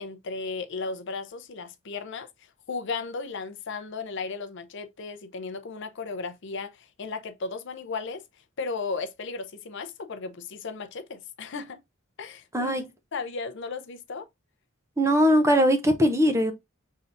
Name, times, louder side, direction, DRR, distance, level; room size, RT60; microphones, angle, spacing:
voice 1, 0.0-2.3 2.7-8.2 8.6-11.8 12.2-12.8 13.1-14.3, left 4 dB, 60° left, 0.6 m, -35 dB
voice 2, 15.0-16.5, equal, 15° right, 0.7 m, -20 dB
5.5 x 3.3 x 2.5 m
head